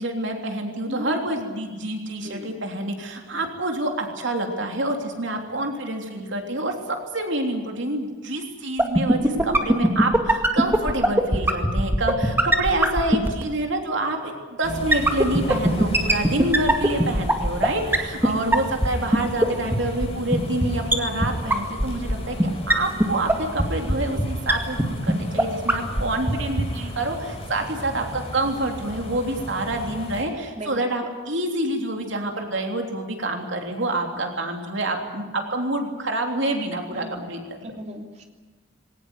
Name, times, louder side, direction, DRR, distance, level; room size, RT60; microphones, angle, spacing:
voice 1, 0.0-6.7 7.1-14.3 14.6-37.7, right 1 dB, 65° right, 3 dB, 3.3 m, -27 dB
voice 2, 0.9-1.2 2.2-2.5 16.6-16.7 18.2-18.3 30.6-30.8 31.0-31.1 36.9-37.2 37.6-38.2, right 1 dB, 35° right, 2 dB, 3.1 m, -36 dB
sound 1, 8.8-13.4 14.9-17.7 17.9-18.0 18.2-18.3 18.5-18.6 18.8-18.9 19.1-19.2 19.4-19.5 19.7-19.8 20.0-20.1 20.3-20.4 20.6-20.7 20.9-21.0 21.2-21.3 21.5-21.6 21.8-22.1 22.4-22.5 22.7-22.8 23.0-23.1 23.3-23.4 23.6-23.7 23.9-24.0 24.2-24.3 24.5-24.6 24.8-24.9 25.1-25.2 25.4-25.5 25.7-26.0 26.3-26.4 26.6-26.7, right 1 dB, 10° right, 2.1 m, -17 dB
sound 2, 14.6-30.2, equal, 30° left, 4.7 m, -35 dB
20.5 x 18.5 x 9.7 m, 1.3 s
head